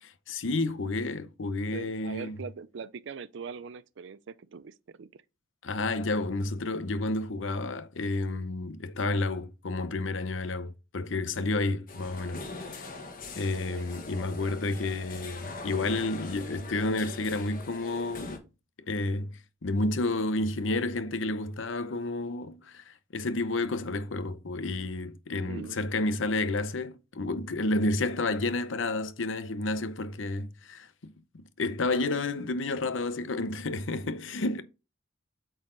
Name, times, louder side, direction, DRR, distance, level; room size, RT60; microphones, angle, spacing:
voice 1, 0.0-2.4 5.6-12.4 12.7-12.9 13.4-18.4 18.9-34.6, left 2 dB, 75° left, 0.7 m, -31 dB
voice 2, 1.7-5.1 13.5-13.8 25.5-25.8, right 5 dB, 65° right, 0.4 m, -42 dB
sound 1, 11.9-18.4, left 3 dB, 45° left, 1.3 m, -42 dB
8.4 x 4.0 x 3.8 m
head